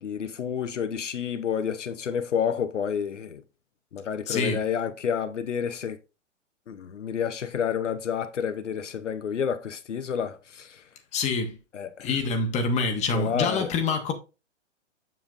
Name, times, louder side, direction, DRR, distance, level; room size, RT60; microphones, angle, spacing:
voice 1, 0.0-3.4 3.9-6.0 6.7-10.8 11.7-12.1 13.1-13.7, left 7 dB, 75° left, 0.8 m, -29 dB
voice 2, 4.3-4.6 11.1-11.6 12.0-14.1, left 4 dB, 20° left, 1.1 m, -26 dB
7.4 x 6.9 x 2.5 m
figure-of-eight pair, 120°, 38 cm